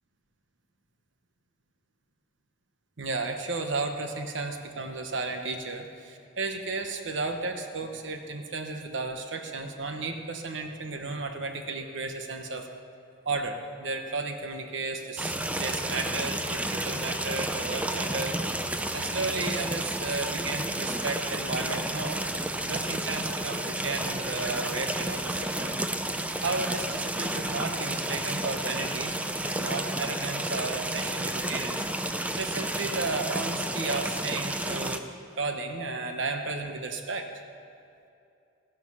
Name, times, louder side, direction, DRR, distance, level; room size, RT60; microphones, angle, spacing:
voice 1, 3.0-12.7 13.2-18.4 18.9-22.2 22.6-25.8 26.4-35.0 35.4-37.3, right 3 dB, 80° right, 5 dB, 1.2 m, -33 dB
sound 1, 15.2-35.0, right 1 dB, 5° right, 0.5 m, -31 dB
14.5 x 11.0 x 5.6 m, 2.6 s
head